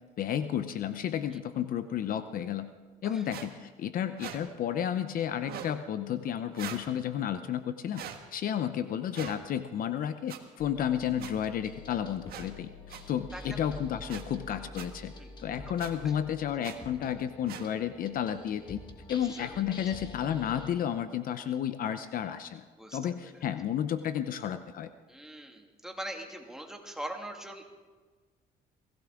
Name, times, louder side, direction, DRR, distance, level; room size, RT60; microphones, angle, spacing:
voice 1, 0.2-2.7 3.0-8.0 8.3-12.7 13.1-15.1 15.4-18.8 19.1-22.7 22.9-24.9, left 9 dB, 55° left, 11 dB, 0.7 m, -32 dB
sound 1, 3.3-3.5 4.2-4.4 5.4-5.7 6.5-6.8 7.9-8.2 9.1-9.4 10.3-10.4 11.2-11.3 12.3-12.5 12.9-13.0 14.1-14.2 14.7-14.9 15.8-15.9 16.6-16.8 17.5-17.6, right 10 dB, 65° right, 1.6 m, -41 dB
sound 2, 10.6-20.7, left 3 dB, 25° left, 1.8 m, -47 dB
voice 2, 13.3-13.7 15.2-15.3 16.0-16.1 19.1-19.7 22.8-23.4 25.1-27.6, right 1 dB, 5° right, 2 dB, 2.2 m, -42 dB
22.0 x 16.0 x 3.7 m, 1.4 s
cardioid pair, 110°, 17 cm